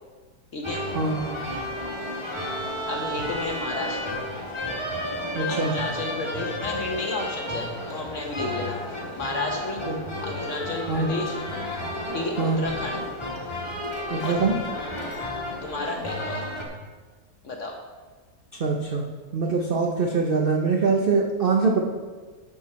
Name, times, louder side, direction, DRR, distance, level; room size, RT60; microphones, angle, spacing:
voice 1, 0.5-0.8 2.8-4.2 5.4-9.8 10.2-11.4 12.1-13.0 14.2-14.4 15.6-16.4 17.4-17.8, left 3 dB, 55° left, 2 dB, 1.1 m, -32 dB
sound 1, 0.6-16.7, left 1 dB, 15° left, 1.4 m, -32 dB
voice 2, 5.3-5.7 9.9-10.0 10.9-11.1 12.4-12.6 14.1-14.5 18.6-19.0 19.3-21.8, right 4 dB, 50° right, 0 dB, 0.7 m, -23 dB
11.0 x 6.1 x 4.2 m, 1.4 s
omnidirectional pair, 1.8 m